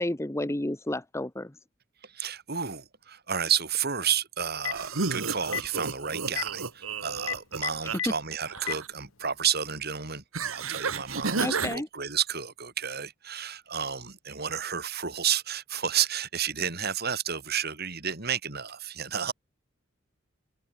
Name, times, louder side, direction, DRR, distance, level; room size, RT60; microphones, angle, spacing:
voice 1, 0.0-1.5 11.4-11.9, left 1 dB, 15° left, 0.8 m, -31 dB
voice 2, 2.0-19.3, right 8 dB, 50° right, 4.6 m, -31 dB
Telephone, 4.4-4.9 5.4-5.7 6.3-6.4 7.2-8.1 8.6-8.7, left 8 dB, 80° left, 2.8 m, -30 dB
sound 1, 4.7-8.0 8.3-8.9 10.3-11.8, right 4 dB, 80° right, 1.9 m, -32 dB
open air
head